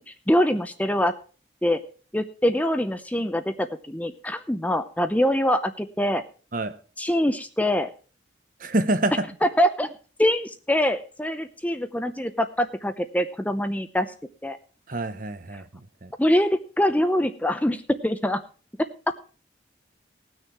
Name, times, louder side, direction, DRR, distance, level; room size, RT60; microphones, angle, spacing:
voice 1, 0.1-1.1 1.6-1.8 2.1-6.2 7.0-7.9 9.4-14.1 14.4-14.6 15.5-15.6 16.2-18.4 19.1-19.2, equal, 10° left, 0.6 m, -24 dB
voice 2, 8.6-9.3 14.9-15.6 16.0-16.1, right 2 dB, 45° right, 0.9 m, -26 dB
19.5 x 6.5 x 4.6 m
head